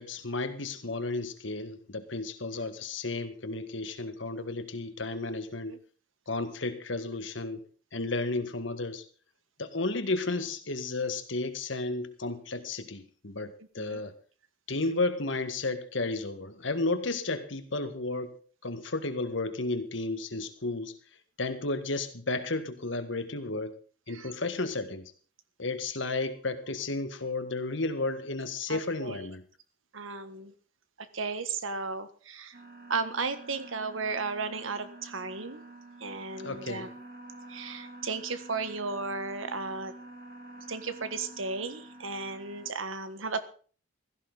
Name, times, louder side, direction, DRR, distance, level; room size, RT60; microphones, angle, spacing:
voice 1, 0.0-5.8 6.3-7.6 7.9-9.1 9.6-14.1 14.7-18.3 18.6-21.0 21.4-23.8 24.1-25.1 25.6-29.4 36.4-36.9, left 2 dB, 70° left, 9 dB, 1.7 m, -33 dB
voice 2, 5.3-5.8 13.8-14.0 24.1-24.3 28.7-29.3 29.9-30.5 31.0-32.6 32.9-35.6 36.0-36.9 37.5-39.9 40.7-43.5, right 4 dB, 80° right, 11 dB, 1.6 m, -35 dB
sound 1, 32.5-42.7, right 1 dB, 50° right, 3.1 m, -48 dB
16.5 x 15.0 x 4.0 m, 0.41 s
head